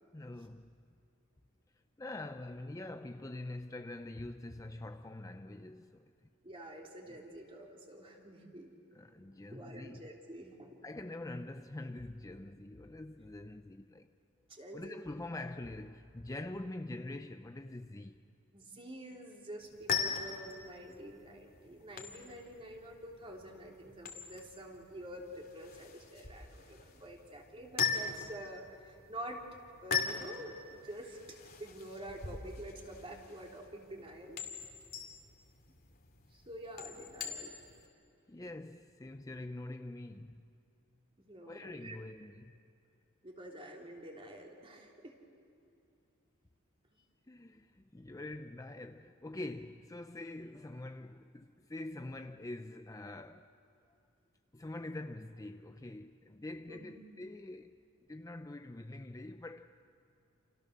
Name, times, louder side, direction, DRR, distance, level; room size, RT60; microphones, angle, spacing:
voice 1, 0.1-0.7 2.0-6.1 7.1-7.2 8.9-10.0 10.8-14.1 14.7-18.2 38.3-40.5 41.5-42.5 47.3-53.5 54.5-57.8 58.1-59.9, left 2 dB, 15° left, 0.5 m, -45 dB
voice 2, 6.4-8.7 9.5-10.8 14.5-15.0 18.5-29.4 29.8-34.4 35.7-35.8 36.3-37.6 41.2-42.1 43.2-45.2 56.7-57.0, right 1 dB, 25° right, 3.3 m, -48 dB
sound 1, 19.6-37.9, left 6 dB, 45° left, 2.4 m, -40 dB
29.0 x 28.5 x 6.7 m
head